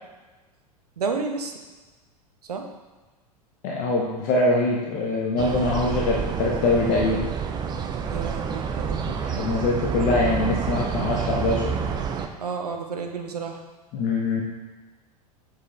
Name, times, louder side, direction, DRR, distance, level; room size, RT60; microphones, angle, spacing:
voice 1, 1.0-1.6 2.4-2.7 8.1-9.0 12.4-13.6, right 5 dB, 75° right, 4 dB, 0.8 m, -31 dB
voice 2, 3.6-7.2 9.1-11.6 13.9-14.4, left 2 dB, 40° left, -2 dB, 0.9 m, -23 dB
sound 1, 5.4-12.3, right 6 dB, 20° right, 0.4 m, -28 dB
6.9 x 4.7 x 3.0 m, 1.2 s
figure-of-eight pair, 90°, 20 cm